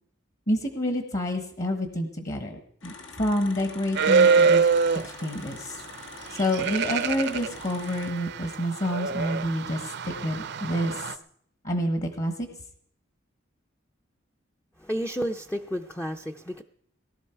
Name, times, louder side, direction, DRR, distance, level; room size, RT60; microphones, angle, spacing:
voice 1, 0.5-5.8 6.3-11.1 11.6-12.5, equal, 40° left, 6 dB, 1.3 m, -28 dB
sound 1, 2.8-8.1, left 4 dB, 80° left, 1.4 m, -44 dB
sound 2, 4.0-5.2 6.3-11.1, right 5 dB, 60° right, 0.6 m, -24 dB
voice 2, 14.8-16.6, equal, 10° left, 4 dB, 0.5 m, -31 dB
18.5 x 11.5 x 4.5 m, 0.67 s
head